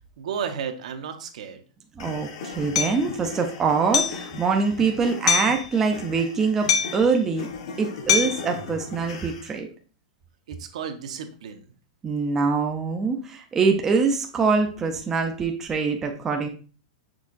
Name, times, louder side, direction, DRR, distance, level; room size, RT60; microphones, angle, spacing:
voice 1, 0.2-1.6 10.5-11.7, right 7 dB, 65° right, 7 dB, 0.7 m, -33 dB
sound 1, 2.0-9.6, left 4 dB, 50° left, 0.8 m, -39 dB
voice 2, 2.0-7.5 7.8-9.7 12.0-16.5, right 4 dB, 10° right, 3 dB, 0.4 m, -24 dB
Hammer, 2.7-3.0 3.9-4.2 5.3-5.6 6.7-7.1 8.1-8.5, left 7 dB, 65° left, 0.5 m, -22 dB
6.2 x 3.5 x 2.4 m, 0.38 s
supercardioid pair, 170°, 4 cm